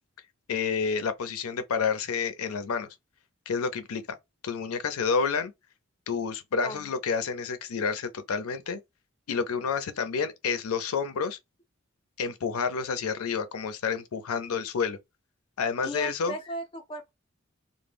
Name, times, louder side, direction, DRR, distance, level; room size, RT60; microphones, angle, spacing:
voice 1, 0.5-2.9 3.5-4.0 4.4-5.5 6.1-8.8 9.3-11.4 12.2-15.0 15.6-16.3, left 5 dB, 90° left, 0.5 m, -29 dB
voice 2, 6.6-6.9 15.8-17.1, right 1 dB, 25° left, 0.4 m, -36 dB
2.0 x 2.0 x 3.3 m
head